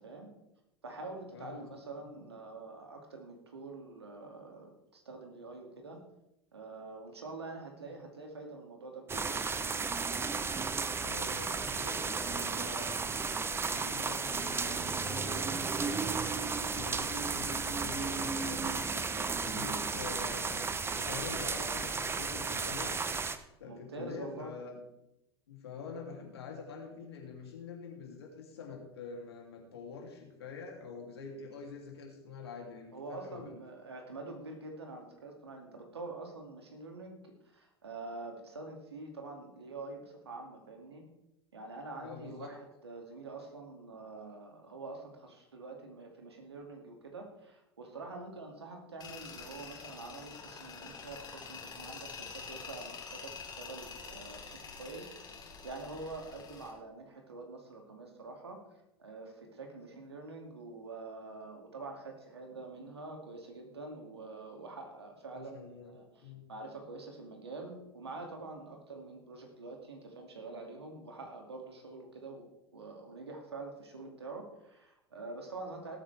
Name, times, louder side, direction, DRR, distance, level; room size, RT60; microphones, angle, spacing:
voice 1, 0.0-0.3 0.8-6.0 6.5-9.9 18.9-19.3 23.7-24.5 32.9-41.0 41.5-72.5 72.7-76.0, right 3 dB, 85° right, 2 dB, 2.4 m, -46 dB
voice 2, 1.3-1.7 11.0-18.9 19.4-23.0 23.6-24.8 25.5-33.5 42.0-42.5 65.3-65.9 66.2-66.5, left 5 dB, 80° left, 1 dB, 2.9 m, -46 dB
sound 1, 9.1-23.4, right 4 dB, 20° right, 0.8 m, -34 dB
sound 2, 14.2-22.0, left 2 dB, 65° right, 2.7 m, -54 dB
Tools, 49.0-56.7, left 5 dB, 30° left, 3.0 m, -47 dB
19.0 x 8.5 x 3.5 m, 0.88 s
hypercardioid pair, 85°, 13 cm